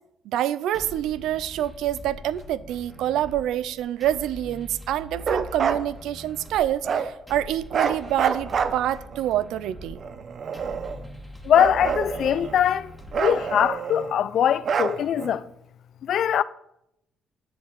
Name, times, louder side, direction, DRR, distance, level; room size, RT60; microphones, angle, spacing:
voice 1, 0.3-10.0, right 12 dB, 85° right, 0.5 m, -27 dB
sound 1, 0.7-13.8, equal, 5° right, 2.6 m, -43 dB
Bark, 5.2-5.8 6.8-7.1 7.7-9.2 10.0-11.1 11.5-12.7 13.1-14.1 14.6-15.3, right 6 dB, 55° right, 1.0 m, -27 dB
voice 2, 11.4-15.5 16.0-16.4, left 9 dB, 70° left, 0.6 m, -22 dB
9.9 x 7.3 x 9.3 m
cardioid pair, 90°, 0 cm